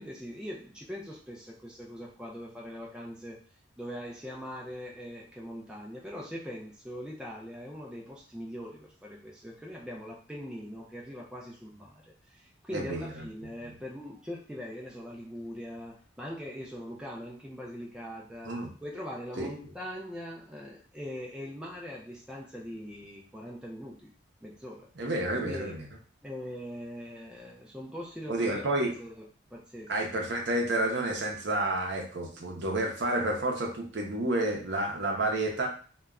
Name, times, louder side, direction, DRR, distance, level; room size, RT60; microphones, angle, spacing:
voice 1, 0.0-3.4 3.8-18.5 18.8-24.1 24.4-24.9 25.3-25.8 26.2-29.3 29.5-29.9, equal, 5° right, -3 dB, 0.3 m, -41 dB
voice 2, 12.7-13.3 18.4-18.7 19.4-19.5 25.0-25.9 28.3-28.9 29.9-35.7, right 2 dB, 60° right, 1 dB, 0.6 m, -30 dB
2.2 x 2.1 x 3.5 m, 0.40 s
head